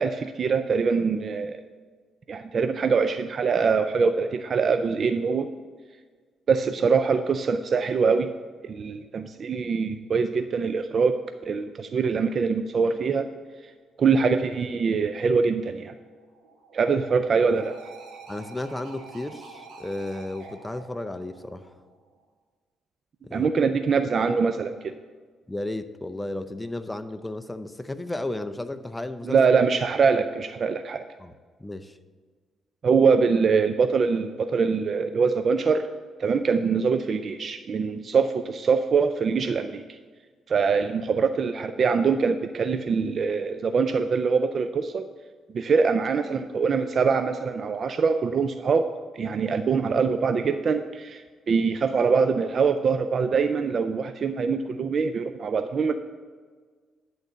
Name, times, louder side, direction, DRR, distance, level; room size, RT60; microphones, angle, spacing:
voice 1, 0.0-1.6 2.3-5.5 6.5-8.3 8.6-13.3 14.0-15.9 16.7-17.7 23.3-24.9 29.2-31.0 32.8-35.8 36.2-40.0 40.5-45.0 45.5-48.9 49.1-51.2 51.5-55.9, right 5 dB, 50° right, 9 dB, 0.4 m, -23 dB
sound 1, 15.8-22.2, right 4 dB, 85° right, 1.6 m, -47 dB
voice 2, 18.3-21.7 23.2-23.5 25.5-29.4 31.2-31.3 31.6-32.0, left 1 dB, 10° left, 9 dB, 0.6 m, -33 dB
10.5 x 3.9 x 7.6 m, 1.5 s
cardioid pair, 90°, 0 cm